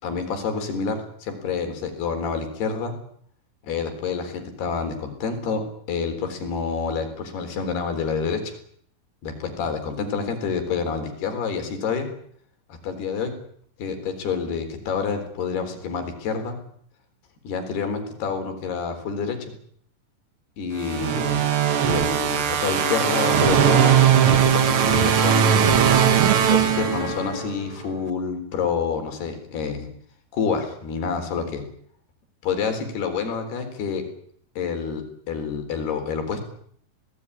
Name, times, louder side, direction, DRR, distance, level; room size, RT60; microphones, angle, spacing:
voice 1, 0.0-2.9 3.6-5.6 5.9-8.6 9.2-12.1 12.7-13.3 13.8-16.6 17.4-19.5 20.6-21.4 21.8-24.0 24.2-25.8 26.5-29.9 30.3-31.6 32.4-34.0 34.6-36.4, left 5 dB, 85° left, 6 dB, 6.0 m, -28 dB
sound 1, 20.8-27.5, right 9 dB, 65° right, 1.4 m, -19 dB
Wind instrument woodwind instrument, 22.7-27.5, left 9 dB, 55° left, 3.8 m, -34 dB
28.0 x 19.0 x 9.9 m, 0.66 s
omnidirectional pair, 4.5 m